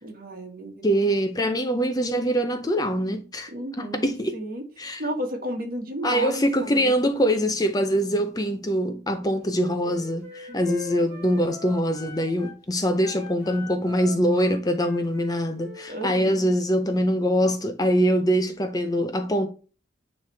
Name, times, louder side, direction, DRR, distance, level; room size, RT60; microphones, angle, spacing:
voice 1, 0.0-0.8 3.5-7.2 10.5-10.6 15.9-16.5, right 1 dB, 50° right, 1.6 m, -33 dB
voice 2, 0.8-3.5 3.8-4.4 4.8-5.0 6.0-19.5, equal, 20° left, 0.5 m, -23 dB
Wind instrument woodwind instrument, 9.5-12.6 12.9-16.4, left 4 dB, 10° right, 3.5 m, -43 dB
9.4 x 3.3 x 3.3 m
head